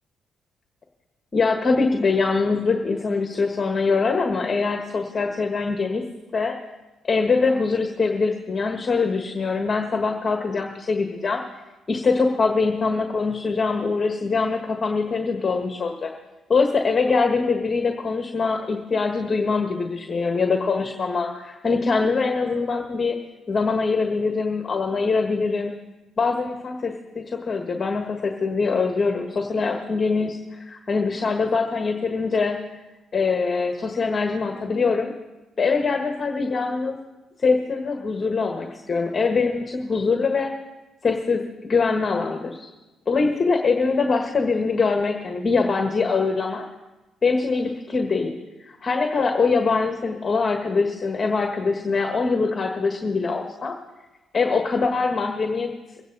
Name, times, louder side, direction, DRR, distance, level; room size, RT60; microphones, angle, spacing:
voice 1, 1.3-6.0 6.3-6.5 7.0-11.4 11.9-16.1 16.5-23.2 23.5-25.7 26.2-32.6 33.1-35.1 35.6-37.0 37.4-40.5 41.0-42.7 43.1-46.6 47.2-48.3 48.6-53.7 54.3-55.7, left 4 dB, 35° left, 3 dB, 1.5 m, -23 dB
23.0 x 9.3 x 4.0 m, 1.1 s
cardioid pair, 90°, 0 cm